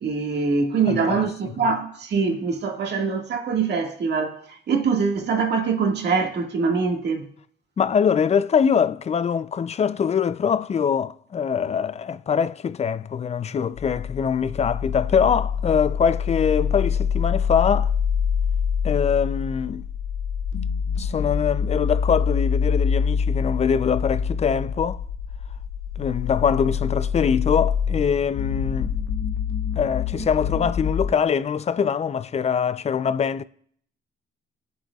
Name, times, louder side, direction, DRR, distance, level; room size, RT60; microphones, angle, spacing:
voice 1, 0.0-7.3, right 5 dB, 60° right, 1.8 m, -23 dB
voice 2, 0.9-1.2 1.6-1.7 7.8-17.9 18.8-19.9 21.0-25.0 26.0-28.9 29.8-33.4, left 7 dB, 35° left, 0.4 m, -23 dB
sound 1, 13.8-31.1, left 6 dB, 80° left, 1.2 m, -25 dB
21.0 x 7.6 x 2.3 m
cardioid pair, 90°, 20 cm